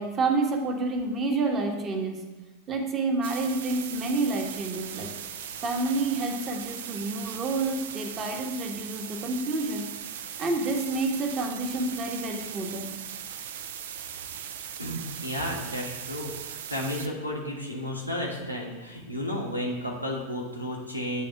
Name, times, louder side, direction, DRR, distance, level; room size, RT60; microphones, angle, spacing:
voice 1, 0.0-2.2 2.7-5.1 5.6-9.9 10.4-12.9, right 3 dB, 25° right, 3 dB, 1.1 m, -29 dB
sound 1, 3.2-17.1, right 9 dB, 55° right, 0.4 m, -39 dB
voice 2, 14.8-16.3 16.7-21.2, equal, 90° left, -1 dB, 1.4 m, -32 dB
8.3 x 3.5 x 5.7 m, 1.2 s
figure-of-eight pair, 90°, 0 cm